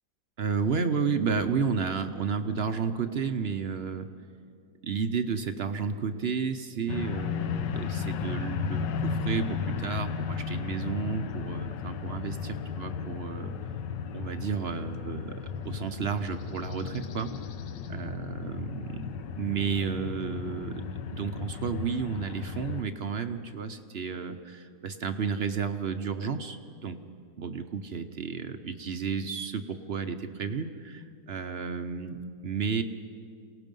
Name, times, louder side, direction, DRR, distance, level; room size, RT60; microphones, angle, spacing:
voice 1, 0.4-4.1 4.8-13.5 14.1-17.3 17.9-19.1 19.4-27.0 27.4-32.8, right 6 dB, 55° right, 8 dB, 0.7 m, -32 dB
sound 1, 6.9-22.8, left 6 dB, 80° left, 1.4 m, -35 dB
28.0 x 18.0 x 5.3 m, 2.3 s
omnidirectional pair, 1.9 m